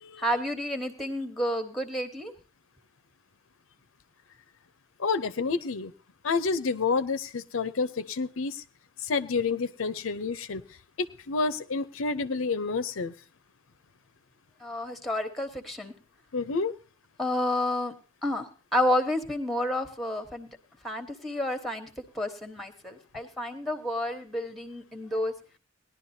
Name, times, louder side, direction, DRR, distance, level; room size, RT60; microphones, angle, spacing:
voice 1, 0.2-2.3 14.6-15.9 17.2-17.9 18.2-20.5 20.8-21.9 22.1-25.3, left 1 dB, ahead, 7 dB, 1.2 m, -30 dB
voice 2, 5.0-5.9 6.2-8.6 9.0-10.6 11.0-13.1 16.3-16.7, left 4 dB, 75° left, 13 dB, 0.6 m, -29 dB
19.0 x 11.0 x 2.8 m, 0.36 s
head